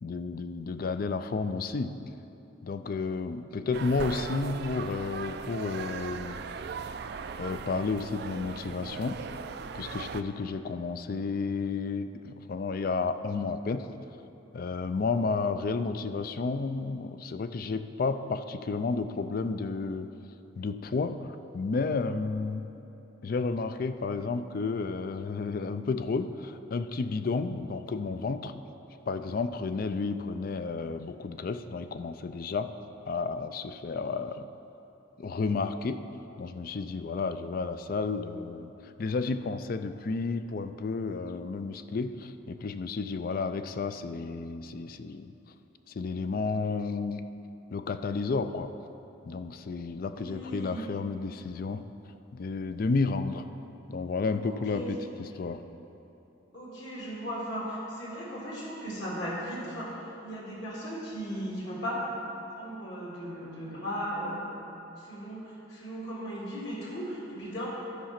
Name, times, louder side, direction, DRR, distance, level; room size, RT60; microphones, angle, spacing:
voice 1, 0.0-2.0 2.6-6.4 7.4-9.2 9.7-13.9 14.5-20.1 20.6-22.7 23.2-28.5 29.1-32.7 33.1-34.5 35.2-36.0 36.4-45.3 45.9-47.3 47.7-48.7 49.2-51.8 52.3-53.5 53.9-55.6, left 4 dB, 45° left, 11 dB, 0.4 m, -32 dB
sound 1, 3.7-10.2, right 5 dB, 55° right, 0.3 m, -38 dB
voice 2, 50.0-50.9 54.4-55.0 56.5-62.0 62.5-64.4 65.0-67.7, equal, 60° left, -6 dB, 2.1 m, -37 dB
13.0 x 4.9 x 5.8 m, 3.0 s
head